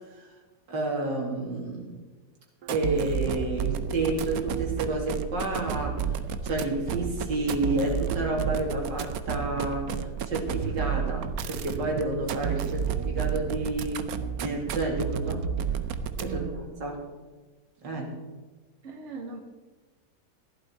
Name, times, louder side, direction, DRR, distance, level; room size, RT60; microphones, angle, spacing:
voice 1, 0.7-2.0 2.7-6.1 6.4-14.1 14.4-15.5 16.2-16.4 16.8-17.0 17.8-18.1, right 2 dB, 90° right, -1 dB, 3.1 m, -30 dB
sound 1, 2.6-16.6, right 7 dB, 65° right, 1.1 m, -31 dB
voice 2, 16.2-16.7 18.8-19.4, right 4 dB, 45° right, 2 dB, 1.8 m, -39 dB
15.0 x 11.5 x 4.4 m, 1.3 s
omnidirectional pair, 1.9 m